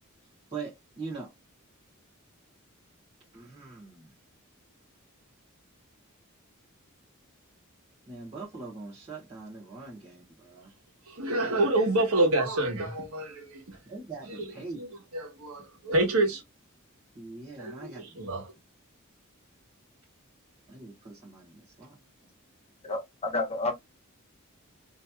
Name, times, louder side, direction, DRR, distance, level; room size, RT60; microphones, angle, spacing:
voice 1, 0.5-1.3 3.3-4.1 8.1-10.7 13.9-14.8 17.1-18.4 20.7-22.0, right 4 dB, 30° right, 1.3 m, -42 dB
voice 2, 11.1-13.8 14.3-16.4 17.6-18.5, right 2 dB, 85° right, 1.2 m, -28 dB
voice 3, 22.8-23.7, left 2 dB, 30° left, 1.1 m, -30 dB
3.1 x 2.8 x 2.3 m
head